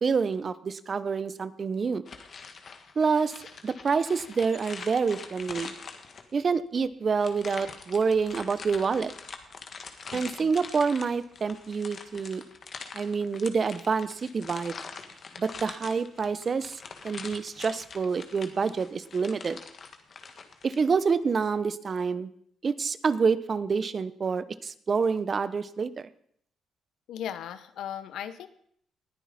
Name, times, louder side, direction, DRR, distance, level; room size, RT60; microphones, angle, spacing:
voice 1, 0.0-2.0 3.0-3.3 3.6-5.7 6.3-9.1 10.1-12.4 12.9-14.8 15.4-16.8 17.0-19.6 20.6-22.3 22.6-26.1, right 5 dB, 40° right, 15 dB, 0.8 m, -27 dB
sound 1, 2.1-6.5 7.2-20.8, left 5 dB, 45° left, 1.7 m, -44 dB
voice 2, 10.1-10.5 27.1-28.5, left 10 dB, 80° left, 12 dB, 0.9 m, -37 dB
20.0 x 10.5 x 4.2 m, 0.66 s
cardioid pair, 90°, 0 cm